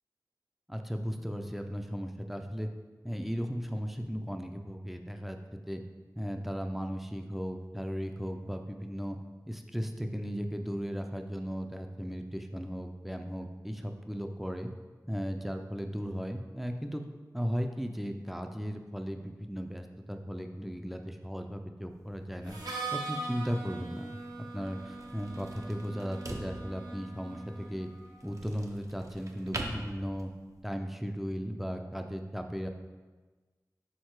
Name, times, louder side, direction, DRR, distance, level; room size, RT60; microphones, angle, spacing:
voice 1, 0.7-2.7 3.0-5.8 6.1-9.2 9.5-14.7 15.1-17.0 17.3-22.6 22.9-24.2 24.5-27.9 28.2-30.3 30.6-32.7, equal, 5° right, 5 dB, 0.5 m, -36 dB
sound 1, 21.9-30.6, right 1 dB, 50° right, 0.7 m, -45 dB
Harmonica, 22.5-28.2, right 3 dB, 70° right, 1.1 m, -41 dB
6.6 x 3.7 x 4.7 m, 1.3 s
wide cardioid pair, 65°, 7 cm